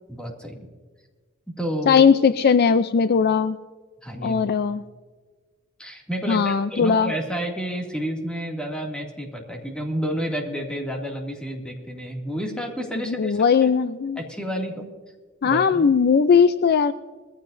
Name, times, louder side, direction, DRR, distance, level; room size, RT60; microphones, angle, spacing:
voice 1, 0.1-0.7 1.6-2.0 4.0-4.5 5.8-13.7 14.2-14.9 15.4-15.9, equal, 5° left, 0 dB, 2.3 m, -30 dB
voice 2, 1.9-3.6 4.2-4.8 6.3-7.1 13.1-14.2 15.4-16.9, left 6 dB, 50° left, 12 dB, 0.4 m, -19 dB
21.5 x 15.0 x 2.6 m, 1.4 s
head